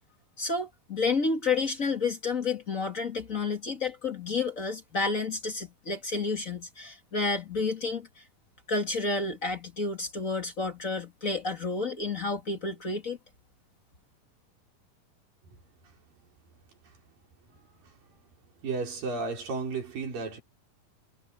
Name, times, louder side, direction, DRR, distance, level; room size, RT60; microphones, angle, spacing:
voice 1, 0.4-8.2 8.7-13.2, left 4 dB, 30° left, 2.0 m, -30 dB
voice 2, 18.6-20.4, right 4 dB, 75° right, 6.8 m, -33 dB
omnidirectional pair, 4.0 m